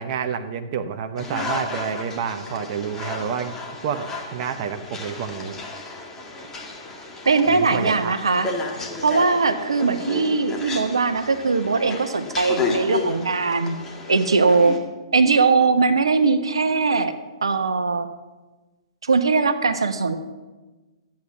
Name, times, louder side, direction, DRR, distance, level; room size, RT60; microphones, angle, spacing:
voice 1, 0.0-3.6 3.8-5.6 7.5-8.2, right 7 dB, 40° right, 7 dB, 0.9 m, -29 dB
sound 1, 1.2-14.8, left 3 dB, 15° left, 2.0 m, -32 dB
voice 2, 7.2-8.5 9.0-13.8 14.1-14.8 15.1-17.1 17.4-18.1 19.0-20.2, right 4 dB, 70° right, 9 dB, 1.1 m, -20 dB
13.0 x 8.8 x 7.1 m, 1.2 s
figure-of-eight pair, 120°, 3 cm